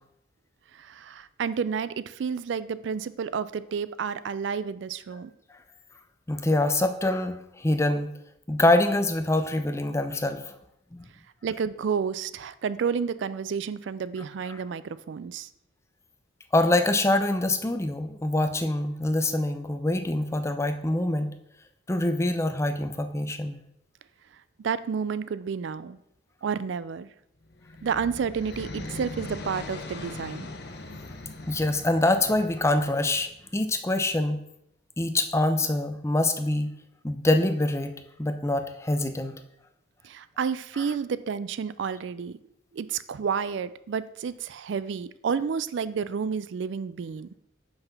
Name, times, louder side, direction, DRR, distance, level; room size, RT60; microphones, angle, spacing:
voice 1, 0.7-5.3 11.4-15.5 24.6-26.0 26.4-27.1 27.8-30.5 40.0-42.4 42.7-47.3, right 6 dB, 65° right, 16 dB, 0.4 m, -30 dB
voice 2, 6.3-8.1 8.5-10.5 10.9-11.0 16.5-21.3 21.9-23.6 31.5-34.4 35.0-36.7 37.0-39.3, left 1 dB, 15° left, 8 dB, 0.5 m, -25 dB
sound 1, 27.4-33.5, left 2 dB, 55° left, 0.9 m, -40 dB
5.6 x 5.6 x 5.8 m, 0.78 s
head